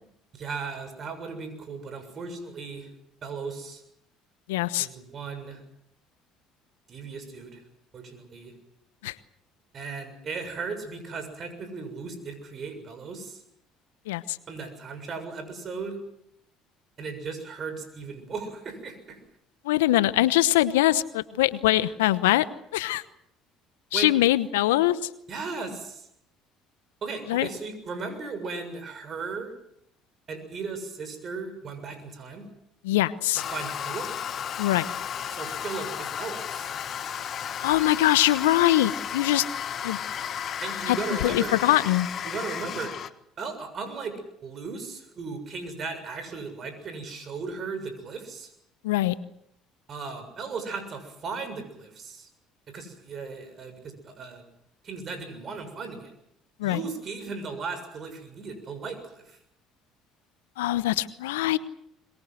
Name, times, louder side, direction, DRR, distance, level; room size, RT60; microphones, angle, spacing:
voice 1, 0.3-2.9 3.2-3.8 4.8-5.6 6.9-7.6 7.9-8.5 9.7-13.4 14.5-16.0 17.0-19.2 23.9-24.1 25.3-26.1 27.0-29.5 30.3-32.5 33.5-34.1 35.3-36.7 40.6-41.6 42.2-43.0 43.4-48.5 49.9-52.3 52.7-54.4 54.8-56.1 56.6-59.4, right 4 dB, 45° right, 9 dB, 7.0 m, -36 dB
voice 2, 4.5-4.9 9.0-9.2 14.1-14.4 19.6-22.4 22.7-23.0 23.9-25.1 27.3-27.5 32.8-33.4 34.6-34.9 37.6-39.4 39.8-40.0 40.9-41.0 41.2-42.1 48.8-49.1 56.6-56.8 60.6-61.6, left 15 dB, 85° left, 16 dB, 0.9 m, -23 dB
Toilet flush, 33.4-43.1, left 9 dB, 50° left, 1.4 m, -33 dB
23.0 x 22.0 x 7.9 m, 0.74 s
hypercardioid pair, 65°, 0 cm